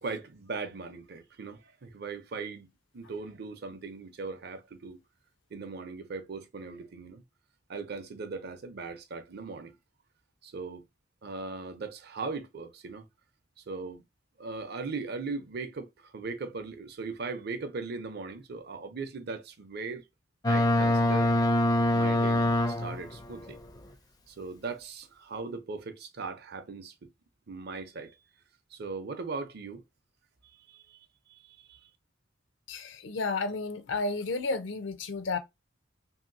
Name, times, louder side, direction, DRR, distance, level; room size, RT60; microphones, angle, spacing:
voice 1, 0.0-5.0 5.5-7.2 7.7-9.7 10.4-10.8 11.2-13.1 13.7-14.0 14.4-20.0 20.5-21.3 21.9-23.6 24.3-26.9 27.5-28.2 28.7-29.8 30.7-31.0 31.3-31.8, right 4 dB, 55° right, 0.6 m, -39 dB
Boat Water vehicle, 20.4-23.1, left 1 dB, 20° left, 0.4 m, -24 dB
voice 2, 32.7-35.4, left 3 dB, 70° left, 0.6 m, -32 dB
3.0 x 2.7 x 2.5 m
head